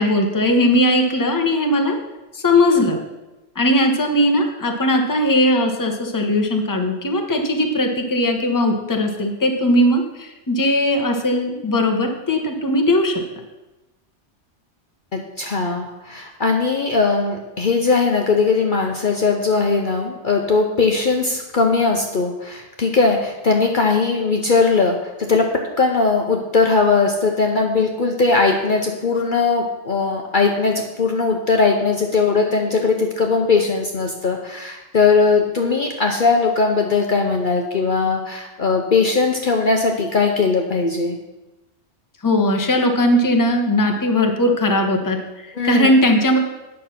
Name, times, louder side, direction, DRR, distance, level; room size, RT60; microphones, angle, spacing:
voice 1, 0.0-2.0 2.3-3.0 3.5-13.2 42.2-46.4, left 1 dB, 15° left, 3 dB, 1.0 m, -18 dB
voice 2, 15.1-25.5 25.8-41.2 45.5-45.9, left 4 dB, 50° left, 2 dB, 0.9 m, -19 dB
9.0 x 6.5 x 5.9 m, 1.1 s
omnidirectional pair, 1.2 m